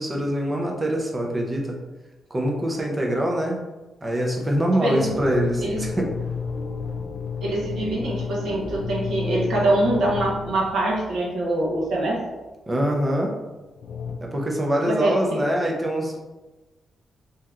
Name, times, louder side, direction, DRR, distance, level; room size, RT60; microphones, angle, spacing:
voice 1, 0.0-1.8 2.3-3.6 4.0-6.1 12.7-13.4 14.2-16.2, equal, 15° right, 0 dB, 0.5 m, -24 dB
sound 1, 5.0-11.5 13.8-14.2, left 5 dB, 55° left, 0.3 m, -31 dB
voice 2, 7.4-12.2 14.9-15.4, right 1 dB, 70° right, -4 dB, 0.9 m, -24 dB
3.3 x 2.7 x 2.4 m, 1.1 s
wide cardioid pair, 165°, 0 cm